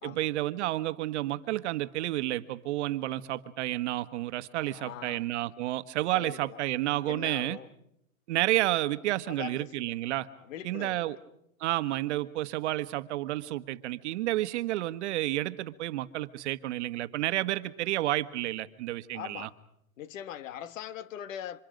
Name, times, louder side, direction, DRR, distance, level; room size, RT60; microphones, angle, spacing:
voice 1, 0.0-7.6 8.3-10.3 10.6-11.2 11.6-19.5, right 16 dB, 55° right, 1.3 m, -30 dB
voice 2, 4.6-5.3 6.1-6.6 7.0-7.7 9.3-9.8 10.4-11.1 19.1-19.6 20.0-21.6, left 10 dB, 65° left, 1.5 m, -41 dB
28.5 x 26.5 x 5.2 m
hypercardioid pair, 145°, 42 cm